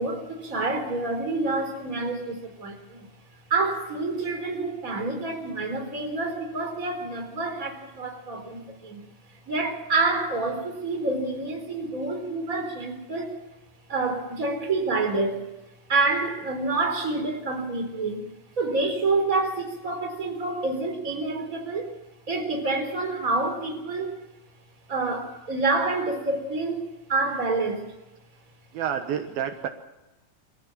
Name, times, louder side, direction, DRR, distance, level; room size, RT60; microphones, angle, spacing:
voice 1, 0.0-3.1 3.5-9.0 9.5-13.4 13.9-15.5 15.9-18.2 18.6-22.0 22.3-24.1 24.9-27.9, right 3 dB, 20° right, 4.2 m, -28 dB
voice 2, 28.7-29.7, right 9 dB, 75° right, 3.0 m, -29 dB
25.5 x 15.0 x 7.5 m
omnidirectional pair, 4.4 m